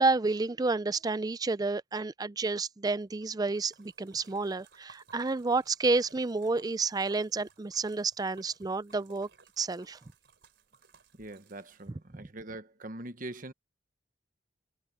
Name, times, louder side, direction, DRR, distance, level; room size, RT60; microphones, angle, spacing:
voice 1, 0.0-9.3 9.6-10.0, right 3 dB, 20° right, 0.4 m, -30 dB
Splash splatter, 3.0-12.1, right 4 dB, 65° right, 4.4 m, -61 dB
voice 2, 11.2-13.5, right 2 dB, 45° right, 1.2 m, -43 dB
head